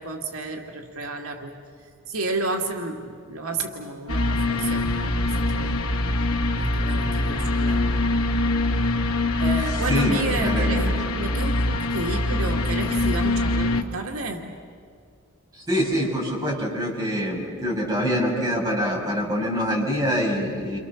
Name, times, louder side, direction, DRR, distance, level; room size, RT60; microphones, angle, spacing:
voice 1, 0.0-1.6 2.1-5.8 6.6-8.0 9.4-14.4, right 3 dB, 80° right, 3 dB, 2.4 m, -31 dB
sound 1, 4.1-13.8, left 2 dB, 75° left, 2.2 m, -23 dB
voice 2, 9.9-10.9 15.5-20.8, equal, 15° right, -3 dB, 6.4 m, -25 dB
29.5 x 27.5 x 7.3 m, 2.2 s
head